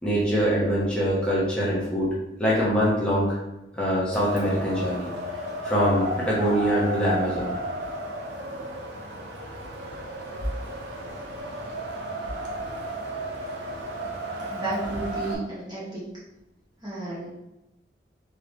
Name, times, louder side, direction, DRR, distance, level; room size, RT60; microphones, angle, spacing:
voice 1, 0.0-3.4 3.7-5.1 5.6-7.5, equal, 5° left, -8 dB, 1.1 m, -24 dB
Wind, 4.1-15.3, right 1 dB, 80° right, 0.8 m, -33 dB
voice 2, 14.4-16.1 16.8-17.3, right 2 dB, 25° right, -8 dB, 1.6 m, -33 dB
3.8 x 3.6 x 3.3 m, 0.96 s
head